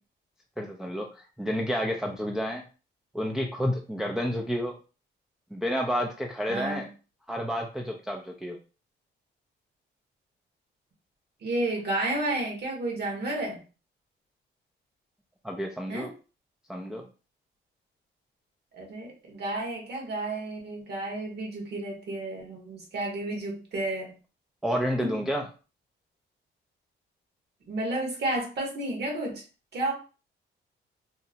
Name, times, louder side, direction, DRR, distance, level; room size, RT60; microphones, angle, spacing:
voice 1, 0.6-2.6 3.1-4.7 5.5-6.9 7.3-8.6 15.4-16.1 16.7-17.0 24.6-25.5, equal, ahead, 0 dB, 0.3 m, -30 dB
voice 2, 6.5-6.8 11.4-13.6 15.9-16.1 18.7-24.1 25.0-25.1 27.7-29.4 29.7-29.9, right 2 dB, 55° right, 0 dB, 1.1 m, -31 dB
2.8 x 2.0 x 2.7 m, 0.34 s
cardioid pair, 90°, 20 cm